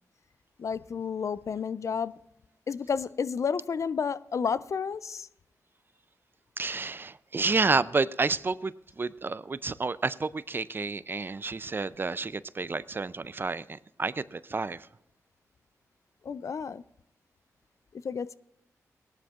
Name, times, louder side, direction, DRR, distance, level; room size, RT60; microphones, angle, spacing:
voice 1, 0.6-2.1 2.7-5.3 16.2-16.8 17.9-18.4, left 6 dB, 55° left, 0.3 m, -31 dB
voice 2, 6.6-14.9, right 4 dB, 35° right, 0.4 m, -30 dB
17.5 x 11.5 x 2.4 m
cardioid pair, 50°, 6 cm